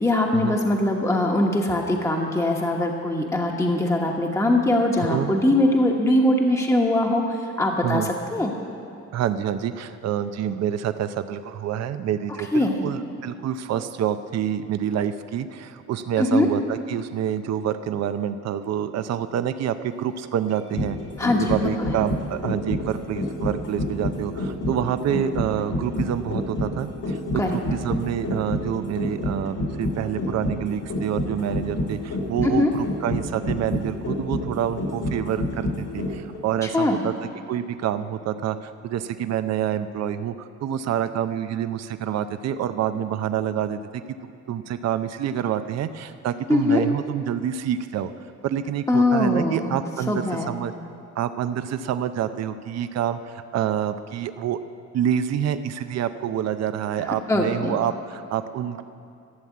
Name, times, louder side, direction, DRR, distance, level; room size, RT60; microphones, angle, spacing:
voice 1, 0.0-8.5 12.5-12.8 16.2-16.5 21.2-21.9 27.4-27.6 32.4-32.7 36.6-37.0 46.5-46.8 48.9-50.5 57.3-57.8, left 1 dB, 10° left, 0 dB, 1.2 m, -22 dB
voice 2, 9.1-21.0 21.4-27.2 27.5-35.7 35.9-37.1 37.5-43.8 44.2-48.1 48.4-50.7 51.2-54.6 54.9-58.8, right 9 dB, 60° right, 11 dB, 0.6 m, -27 dB
sound 1, 20.5-36.4 36.7-36.8, left 1 dB, 80° left, 3.0 m, -28 dB
13.0 x 7.2 x 8.4 m, 2.5 s
cardioid pair, 90°, 30 cm